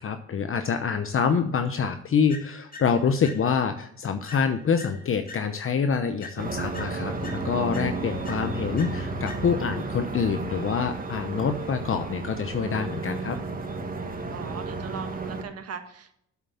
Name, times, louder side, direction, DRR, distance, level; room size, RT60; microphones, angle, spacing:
voice 1, 0.0-13.4, left 6 dB, 45° left, 8 dB, 0.9 m, -26 dB
sound 1, 2.3-3.8 4.3-5.8 6.2-9.8, left 3 dB, 30° left, 2.4 m, -46 dB
sound 2, 6.4-15.4, right 3 dB, 30° right, 1.6 m, -33 dB
voice 2, 14.3-16.1, right 6 dB, 55° right, 7 dB, 1.6 m, -39 dB
8.2 x 7.2 x 7.0 m, 0.72 s
cardioid pair, 90°, 30 cm